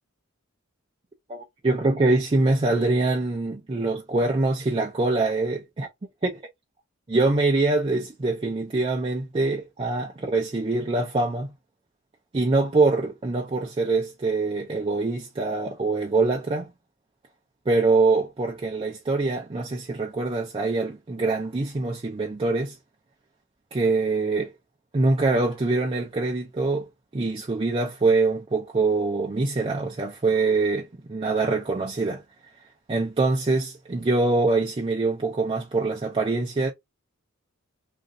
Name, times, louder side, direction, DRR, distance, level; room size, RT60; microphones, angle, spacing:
voice 1, 1.3-5.9 7.1-11.5 12.3-16.7 17.7-22.7 23.7-24.5 24.9-32.2 32.9-36.7, right 3 dB, 25° right, 0.4 m, -24 dB
3.1 x 2.5 x 2.6 m
head